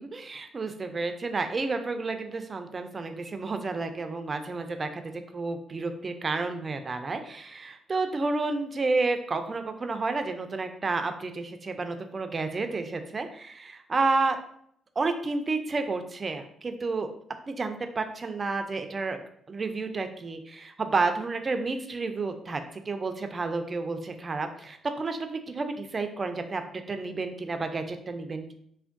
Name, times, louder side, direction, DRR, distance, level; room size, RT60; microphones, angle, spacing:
voice 1, 0.0-14.4 15.0-17.1 17.5-19.2 19.5-28.5, right 3 dB, 35° right, 7 dB, 0.4 m, -31 dB
3.4 x 2.2 x 2.5 m, 0.67 s
cardioid pair, 90°, 0 cm